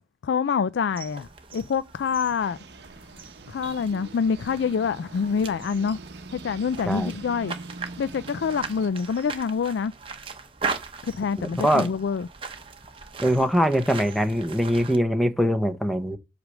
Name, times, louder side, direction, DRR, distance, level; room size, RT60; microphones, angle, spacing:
voice 1, 0.2-2.6 3.5-6.0 6.3-7.5 8.0-9.9 11.0-12.3, left 6 dB, 75° left, 0.4 m, -26 dB
sound 1, 0.9-15.0, right 4 dB, 30° right, 1.0 m, -39 dB
sound 2, 2.4-8.9, right 3 dB, 65° right, 0.8 m, -43 dB
voice 2, 11.4-11.9 13.2-16.2, equal, ahead, 0.8 m, -22 dB
8.1 x 3.3 x 6.1 m
head